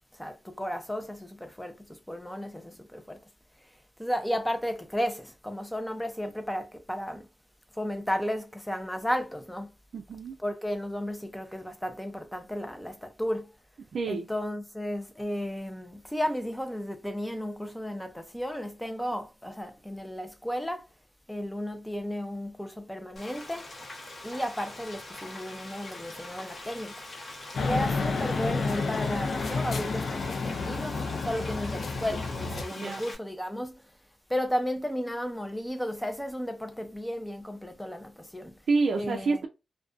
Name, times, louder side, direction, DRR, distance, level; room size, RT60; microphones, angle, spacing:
voice 1, 0.1-3.2 4.0-7.3 7.8-9.7 10.4-13.5 14.1-20.9 21.3-23.7 24.2-27.0 27.6-33.8 34.3-38.6 39.0-39.4, equal, 5° left, 0.4 m, -34 dB
voice 2, 9.9-10.4 13.9-14.3 32.8-33.0 38.7-39.5, right 4 dB, 75° right, 0.3 m, -28 dB
Frying (food), 23.2-33.2, left 2 dB, 40° left, 0.8 m, -43 dB
sound 1, 27.5-32.6, left 4 dB, 70° left, 0.4 m, -30 dB
2.4 x 2.1 x 2.4 m
wide cardioid pair, 125°, 0 cm